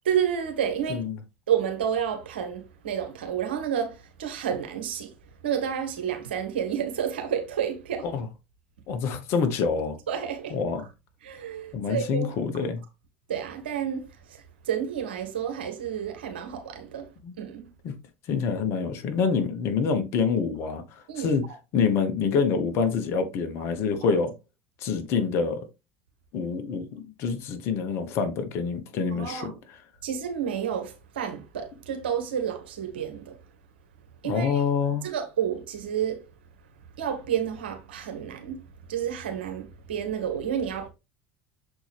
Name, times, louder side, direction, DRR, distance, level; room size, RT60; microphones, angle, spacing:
voice 1, 0.1-1.0 1.5-5.1 5.4-8.1 10.1-10.5 11.2-12.3 13.3-14.0 14.7-17.0 17.4-17.7 21.1-21.3 29.2-29.5 30.0-33.3 34.2-34.5 35.0-36.2 37.0-38.6 38.9-40.9, right 8 dB, 70° right, 1.4 m, -30 dB
voice 2, 8.9-10.0 10.5-10.9 11.7-12.8 17.2-17.3 17.8-18.0 18.3-21.4 21.7-24.3 24.8-25.7 26.3-29.8 34.2-35.1, left 5 dB, 50° left, 1.4 m, -26 dB
6.9 x 4.5 x 3.5 m
figure-of-eight pair, 75°, 6 cm